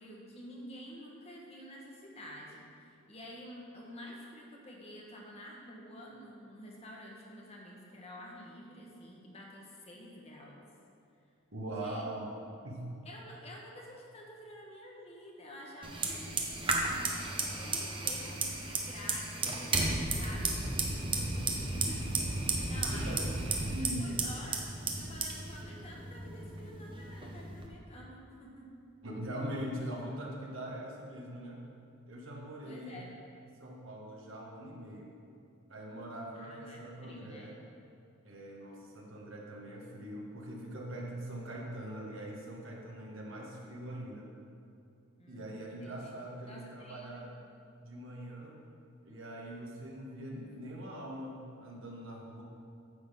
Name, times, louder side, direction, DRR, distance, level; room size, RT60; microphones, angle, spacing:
voice 1, 0.0-10.6 11.7-12.0 13.0-17.1 17.4-20.6 20.9-23.4 23.8-24.6 24.9-28.8 32.6-33.1 36.3-37.5 45.2-46.1 46.4-47.2 50.3-51.0, equal, 30° left, -2 dB, 1.2 m, -49 dB
voice 2, 11.5-12.3 12.6-12.9 22.7-23.2 23.7-24.3 29.0-31.6 32.1-33.0 33.5-35.1 35.7-37.6 38.2-44.3 45.3-47.3 47.8-48.6 49.0-52.4, right 1 dB, 65° right, -1 dB, 1.4 m, -42 dB
Fire, 15.8-27.7, right 3 dB, 25° right, 0.8 m, -34 dB
9.6 x 3.9 x 6.8 m, 2.6 s
head